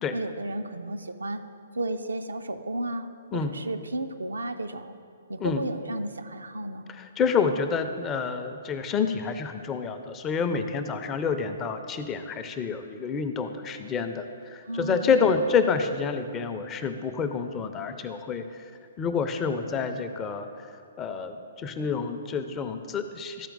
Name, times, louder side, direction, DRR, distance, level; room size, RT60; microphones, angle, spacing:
voice 1, 0.1-1.4 1.7-4.9 5.3-7.0 14.6-15.1, right 1 dB, 75° right, 8 dB, 0.4 m, -33 dB
voice 2, 7.2-18.4 19.0-20.5 21.0-23.5, left 5 dB, 20° left, 8 dB, 0.4 m, -28 dB
12.5 x 4.4 x 3.9 m, 2.3 s
figure-of-eight pair, 120°, 0 cm